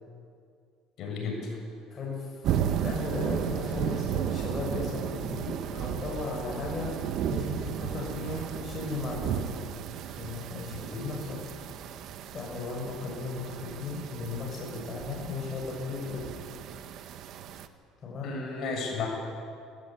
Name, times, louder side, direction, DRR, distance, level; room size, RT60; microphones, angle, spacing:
voice 1, 1.0-1.6 3.6-3.8 18.2-19.1, left 4 dB, 55° left, 0 dB, 7.3 m, -33 dB
voice 2, 1.9-6.9 7.3-9.5 10.1-11.4 12.3-16.2 18.0-18.3, left 3 dB, 35° left, -2 dB, 6.6 m, -36 dB
sound 1, 2.4-17.7, right 9 dB, 55° right, 1.3 m, -34 dB
20.0 x 17.5 x 9.0 m, 2.3 s
cardioid pair, 120°, 0 cm